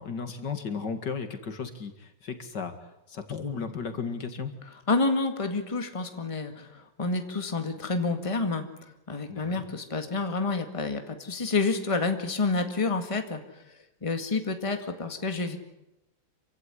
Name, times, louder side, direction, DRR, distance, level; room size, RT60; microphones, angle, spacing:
voice 1, 0.0-4.5 9.3-9.6, left 5 dB, 70° left, 8 dB, 2.6 m, -35 dB
voice 2, 4.9-8.7 9.1-13.4 14.0-15.6, left 3 dB, 20° left, 6 dB, 2.0 m, -29 dB
27.0 x 16.0 x 9.9 m, 0.90 s
omnidirectional pair, 1.9 m